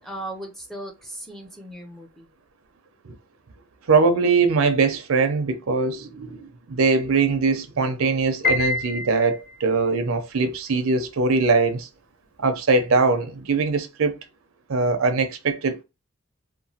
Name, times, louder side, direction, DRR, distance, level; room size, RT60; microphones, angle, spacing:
voice 1, 0.0-2.3, right 1 dB, ahead, 0.4 m, -37 dB
voice 2, 3.9-11.9 12.4-14.2 14.7-15.8, right 4 dB, 80° right, 0.5 m, -21 dB
Piano, 8.4-9.7, left 3 dB, 45° left, 1.0 m, -26 dB
2.9 x 2.2 x 2.7 m
head